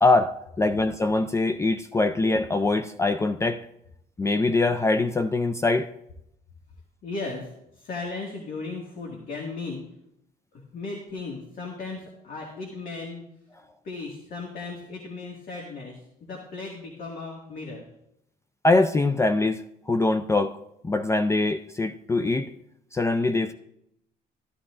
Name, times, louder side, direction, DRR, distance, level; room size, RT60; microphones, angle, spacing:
voice 1, 0.0-3.7 4.2-5.9 18.6-20.6 20.8-22.5 22.9-23.5, left 2 dB, 15° left, 10 dB, 0.4 m, -23 dB
voice 2, 7.0-9.8 10.5-13.2 13.8-17.8, left 3 dB, 55° left, 0 dB, 2.0 m, -36 dB
14.5 x 11.0 x 2.5 m, 0.81 s
cardioid pair, 110°, 17 cm